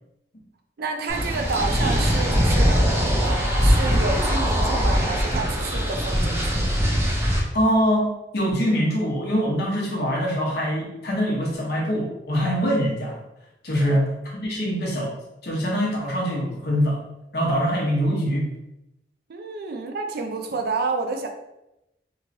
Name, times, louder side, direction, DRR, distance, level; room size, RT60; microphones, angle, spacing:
voice 1, 0.8-2.9 3.2-6.8 13.8-14.0 19.3-21.3, right 3 dB, 60° right, 4 dB, 0.4 m, -29 dB
sound 1, 1.1-7.4, equal, 15° right, 0.5 m, -21 dB
voice 2, 7.5-13.2 13.6-15.2 15.4-17.0 17.3-18.5, equal, 65° left, -2 dB, 0.9 m, -23 dB
3.0 x 2.8 x 2.6 m, 0.89 s
head